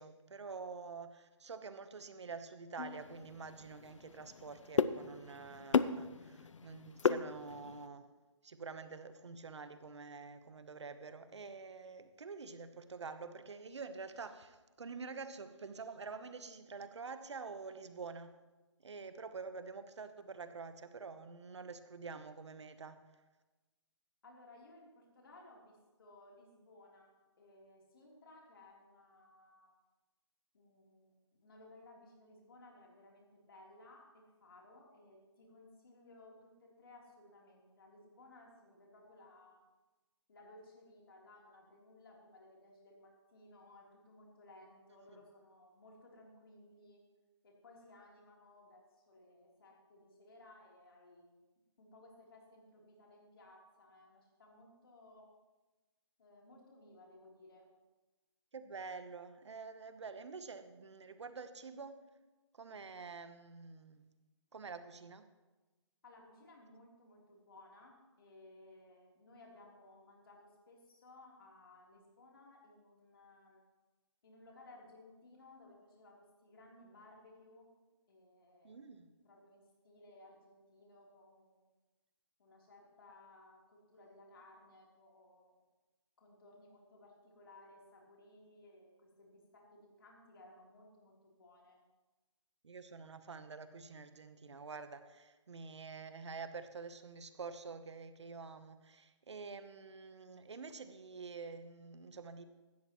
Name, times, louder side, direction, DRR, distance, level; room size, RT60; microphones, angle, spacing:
voice 1, 0.0-8.1 8.4-18.4 18.8-23.0 58.5-62.0 62.5-64.1 64.5-65.3 78.6-79.1 92.6-102.5, right 4 dB, 65° right, 10 dB, 1.0 m, -47 dB
sound 1, 2.8-7.9, left 5 dB, 85° left, 0.6 m, -36 dB
voice 2, 24.2-29.7 30.5-39.6 40.3-47.0 47.4-51.4 51.8-55.3 56.2-57.7 66.0-73.6 74.2-77.7 78.1-78.9 79.2-81.7 82.4-85.6 86.2-91.8, left 2 dB, 50° left, -2 dB, 3.4 m, -60 dB
16.5 x 12.5 x 3.1 m, 1.2 s
hypercardioid pair, 170°, 16 cm